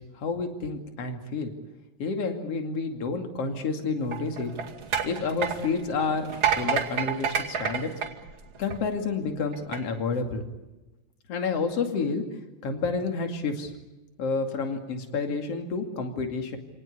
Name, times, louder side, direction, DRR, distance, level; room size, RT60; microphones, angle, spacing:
voice 1, 0.2-1.5 2.0-4.5 5.0-7.9 8.6-10.4 11.3-12.2 12.6-13.7 14.2-16.6, left 4 dB, 45° left, 5 dB, 3.2 m, -29 dB
sound 1, 4.0-9.0 9.5-9.8, right 7 dB, 40° right, 2.6 m, -29 dB
28.5 x 18.5 x 8.5 m, 1.1 s
omnidirectional pair, 4.1 m